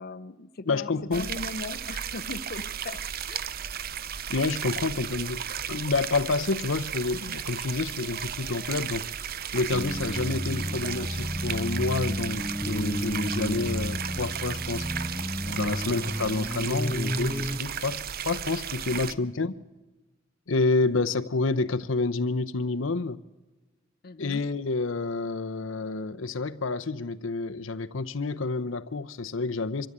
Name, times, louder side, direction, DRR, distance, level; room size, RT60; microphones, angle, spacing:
voice 1, 0.0-3.4 18.9-19.3 24.0-24.5, left 3 dB, 50° left, 0.6 m, -39 dB
voice 2, 0.7-1.3 4.3-9.3 9.5-14.9 15.4-19.5 20.5-23.2 24.2-29.9, left 3 dB, 90° left, 0.8 m, -29 dB
sound 1, 1.1-19.1, right 8 dB, 50° right, 0.6 m, -35 dB
sound 2, 9.7-17.6, equal, 10° left, 0.7 m, -32 dB
24.5 x 13.5 x 8.7 m
head